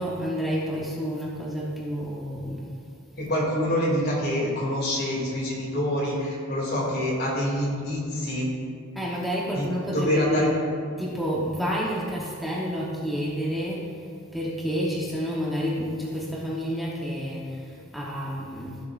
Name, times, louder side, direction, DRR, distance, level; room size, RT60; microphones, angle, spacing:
voice 1, 0.0-2.7 8.9-10.6 11.0-18.8, equal, ahead, -6 dB, 1.0 m, -29 dB
voice 2, 3.2-8.5 9.5-9.7 9.9-10.5, equal, 50° left, -3 dB, 2.5 m, -26 dB
16.0 x 7.3 x 2.5 m, 2.3 s
head